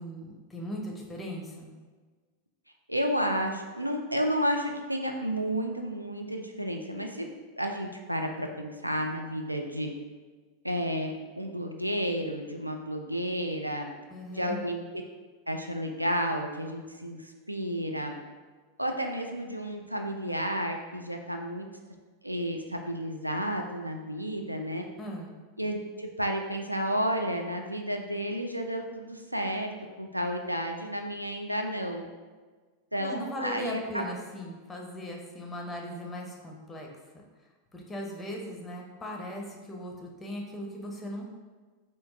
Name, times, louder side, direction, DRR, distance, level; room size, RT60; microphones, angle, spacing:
voice 1, 0.0-1.7 14.1-14.6 25.0-25.4 33.0-36.9 37.7-41.2, equal, 10° left, 0 dB, 0.6 m, -38 dB
voice 2, 2.9-7.3 7.6-9.9 10.6-13.9 14.3-15.0 15.5-17.2 17.5-18.2 18.8-21.7 22.2-24.8 25.6-29.7 30.0-32.1 32.9-34.1, equal, 90° right, 3 dB, 0.3 m, -31 dB
3.4 x 2.6 x 2.6 m, 1.4 s
figure-of-eight pair, 90°, 0 cm